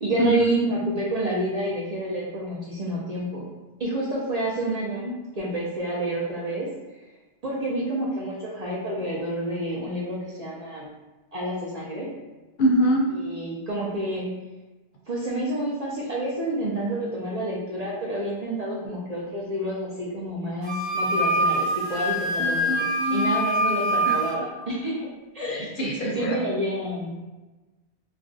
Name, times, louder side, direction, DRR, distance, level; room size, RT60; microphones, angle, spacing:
voice 1, 0.0-3.5 3.8-6.7 7.4-10.9 11.3-12.1 13.1-14.3 15.1-22.7 23.1-25.1 25.3-25.7 26.0-27.1, right 1 dB, 45° right, -6 dB, 0.6 m, -29 dB
voice 2, 12.6-13.0 22.4-23.4 24.0-24.1 25.4-26.4, right 1 dB, 60° left, -3 dB, 0.7 m, -24 dB
Wind instrument woodwind instrument, 20.6-24.4, equal, 25° right, 0.9 m, -24 dB
2.4 x 2.2 x 3.8 m, 1.1 s
omnidirectional pair, 1.1 m